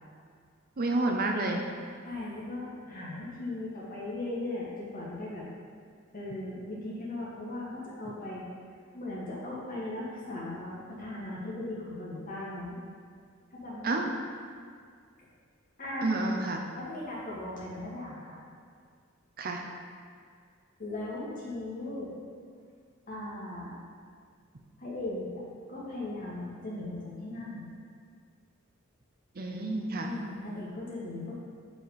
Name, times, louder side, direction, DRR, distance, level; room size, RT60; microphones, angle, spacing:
voice 1, 0.8-1.6 13.8-14.1 16.0-16.6 19.4-19.6 29.4-30.1, right 2 dB, 45° right, 2 dB, 0.6 m, -29 dB
voice 2, 2.0-5.4 6.1-8.5 8.9-12.8 13.5-14.0 15.8-16.3 16.8-18.4 20.8-22.1 23.1-23.8 24.8-25.4 25.7-27.7 30.0-31.3, left 2 dB, 45° left, -6 dB, 1.8 m, -38 dB
7.7 x 5.0 x 4.0 m, 2.1 s
head